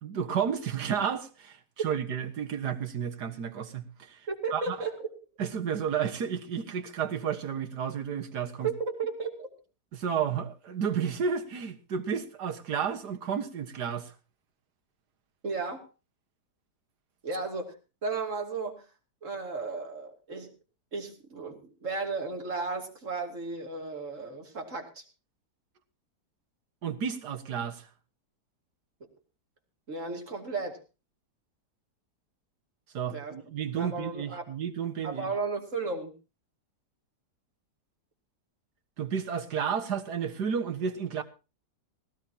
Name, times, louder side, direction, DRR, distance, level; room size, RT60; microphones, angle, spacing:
voice 1, 0.0-1.6 1.8-4.2 4.5-4.8 5.4-8.7 9.9-14.1 26.8-27.9 32.9-35.3 39.0-41.2, right 7 dB, 75° right, 2.0 m, -32 dB
voice 2, 4.3-5.1 8.6-9.5 15.4-15.9 17.2-17.7 18.0-18.8 19.2-20.5 20.9-25.0 29.9-30.8 33.1-33.4 33.7-34.5 35.0-36.1, right 4 dB, 50° right, 3.1 m, -34 dB
18.5 x 17.0 x 2.9 m
omnidirectional pair, 1.8 m